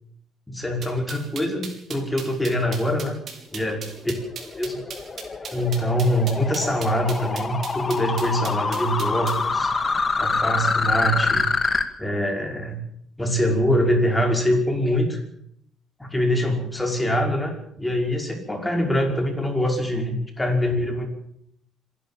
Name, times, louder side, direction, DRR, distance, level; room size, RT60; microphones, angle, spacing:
voice 1, 0.5-3.2 3.5-3.8 4.6-4.8 5.5-9.7 10.2-11.5 12.0-12.8 13.2-15.2 16.0-21.1, equal, 10° left, 3 dB, 5.5 m, -24 dB
sound 1, 0.8-9.4, right 6 dB, 50° right, 5.2 m, -37 dB
sound 2, 3.8-11.8, left 4 dB, 25° left, 2.2 m, -26 dB
26.0 x 12.0 x 8.9 m, 0.71 s
cardioid pair, 110°, 0 cm